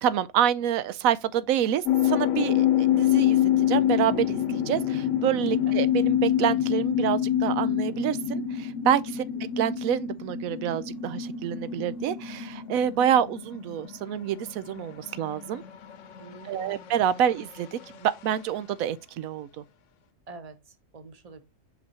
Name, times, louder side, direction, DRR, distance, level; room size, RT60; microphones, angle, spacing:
voice 1, 0.0-9.2 9.6-15.6 16.4-19.6, right 10 dB, 90° right, 1.0 m, -27 dB
sound 1, 1.9-17.9, left 11 dB, 70° left, 1.0 m, -27 dB
voice 2, 16.2-17.0 17.4-17.5 20.3-21.4, right 3 dB, 30° right, 1.1 m, -47 dB
6.2 x 6.0 x 2.8 m
omnidirectional pair, 1.4 m